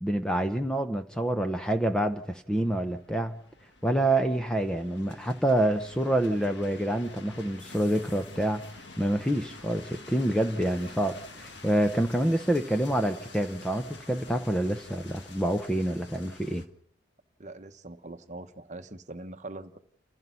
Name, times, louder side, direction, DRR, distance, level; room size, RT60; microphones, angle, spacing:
voice 1, 0.0-3.4 3.8-8.6 9.0-16.6, right 1 dB, 5° left, 0.8 m, -27 dB
sound 1, 1.4-16.7, left 3 dB, 65° left, 1.9 m, -49 dB
voice 2, 17.4-19.8, right 2 dB, 40° right, 1.0 m, -42 dB
30.0 x 15.5 x 5.7 m
head